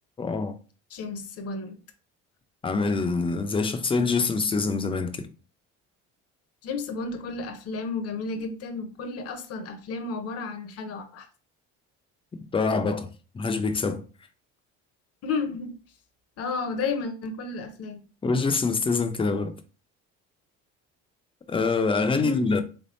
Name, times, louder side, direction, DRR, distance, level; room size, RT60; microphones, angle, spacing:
voice 1, 0.2-0.6 2.6-5.2 12.5-13.1 13.3-14.0 18.2-19.5 21.5-22.6, left 4 dB, 15° left, 0.5 m, -25 dB
voice 2, 0.9-1.8 6.6-11.3 15.2-15.8 16.4-18.0 22.1-22.5, left 4 dB, 50° left, 0.8 m, -32 dB
3.6 x 3.5 x 2.6 m
supercardioid pair, 100°, 32 cm